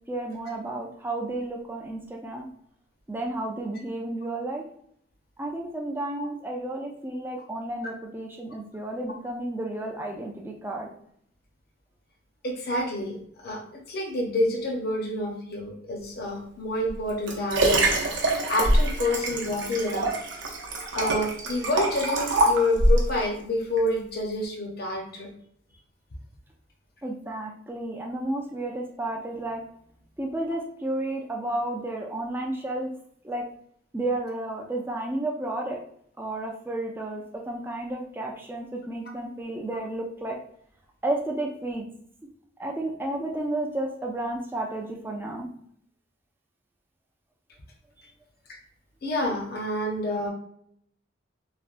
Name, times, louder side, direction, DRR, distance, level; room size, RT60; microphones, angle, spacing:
voice 1, 0.1-2.5 3.1-4.6 5.4-10.9 27.0-29.6 30.2-32.9 33.2-33.4 33.9-35.8 36.2-40.4 41.0-41.9 42.6-45.5, right 1 dB, 10° right, 0 dB, 0.3 m, -32 dB
voice 2, 12.4-13.6 13.9-17.9 18.5-20.2 20.9-25.3 49.0-50.3, left 1 dB, 50° left, 0 dB, 0.7 m, -28 dB
Liquid, 16.9-23.1 23.8-23.9, right 1 dB, 65° right, 0.6 m, -24 dB
3.3 x 2.1 x 2.4 m, 0.67 s
head